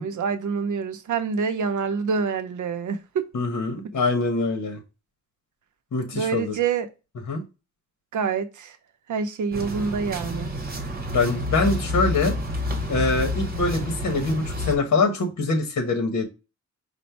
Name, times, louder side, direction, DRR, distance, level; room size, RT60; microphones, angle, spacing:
voice 1, 0.0-3.3 6.1-6.9 8.1-8.8 9.1-10.5, right 5 dB, 80° right, 0.7 m, -26 dB
voice 2, 3.3-4.8 5.9-6.6 7.3-7.4 11.1-12.4 12.9-16.3, left 3 dB, 65° left, 1.1 m, -24 dB
sound 1, 9.5-14.7, left 1 dB, 30° right, 0.9 m, -29 dB
5.2 x 2.2 x 4.3 m
wide cardioid pair, 135°, 30 cm